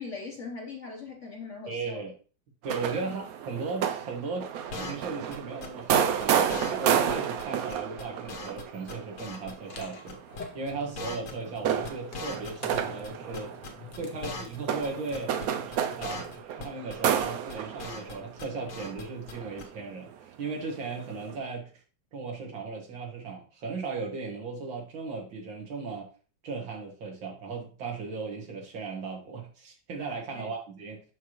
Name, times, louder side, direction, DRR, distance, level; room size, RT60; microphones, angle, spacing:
voice 1, 0.0-2.1 3.0-3.2 14.2-14.4 30.3-30.5, left 4 dB, 50° left, 1.0 m, -41 dB
voice 2, 1.7-2.1 2.6-13.5 14.0-15.4 16.0-21.7 22.1-26.1 26.4-31.0, right 4 dB, 75° right, 2.2 m, -36 dB
sound 1, 2.6-11.0 11.5-20.3 20.9-21.4, right 9 dB, 90° right, 0.8 m, -31 dB
sound 2, 4.7-5.1 5.3-5.4 5.6-5.9 6.2-6.3 6.5-6.8 7.1-7.2 7.4-7.5 7.7-8.6 8.9-9.8 10.1-10.4 10.7-12.8 13.0-14.6 14.8-14.9 15.1-15.5 15.7-15.8 16.0-16.3 16.6-16.9 17.2-18.1 18.4-19.0 19.3-19.4 19.6-19.7, left 3 dB, 85° left, 1.9 m, -39 dB
sound 3, 9.3-16.4, left 4 dB, 65° left, 0.4 m, -48 dB
6.3 x 5.7 x 3.0 m
omnidirectional pair, 2.2 m